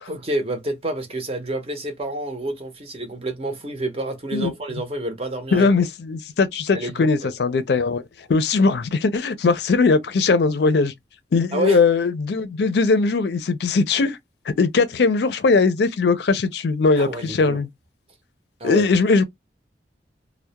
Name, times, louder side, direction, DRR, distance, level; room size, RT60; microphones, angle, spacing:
voice 1, 0.1-5.7 6.7-7.3 11.5-11.8 17.0-17.6 18.6-18.8, right 1 dB, 35° right, 0.6 m, -29 dB
voice 2, 5.5-8.0 8.3-10.9 11.3-14.2 14.6-17.7 18.6-19.2, left 4 dB, 65° left, 0.4 m, -20 dB
2.2 x 2.0 x 2.8 m
head